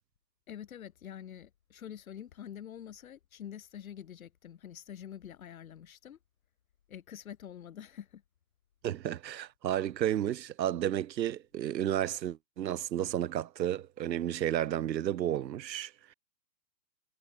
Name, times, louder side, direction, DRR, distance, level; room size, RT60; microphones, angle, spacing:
voice 1, 0.5-6.2 6.9-8.2, left 9 dB, 55° left, 3.1 m, -46 dB
voice 2, 8.8-16.1, right 11 dB, 85° right, 1.0 m, -32 dB
hypercardioid pair, 175°, 49 cm